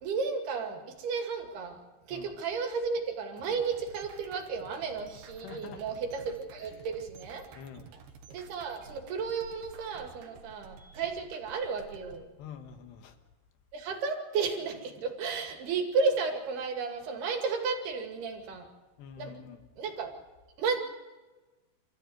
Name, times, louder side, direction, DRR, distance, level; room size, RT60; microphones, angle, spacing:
voice 1, 0.0-7.5 8.3-12.3 13.7-18.7 19.2-19.4 19.8-20.1 20.6-21.0, right 5 dB, 75° right, 3 dB, 4.4 m, -33 dB
sound 1, 3.4-12.2, right 5 dB, 90° right, 3.9 m, -52 dB
voice 2, 5.4-5.8 6.6-6.7 7.6-8.0 12.4-13.2 19.0-19.6, left 8 dB, 85° left, 7 dB, 3.7 m, -46 dB
28.0 x 14.5 x 8.0 m, 1.2 s
omnidirectional pair, 4.7 m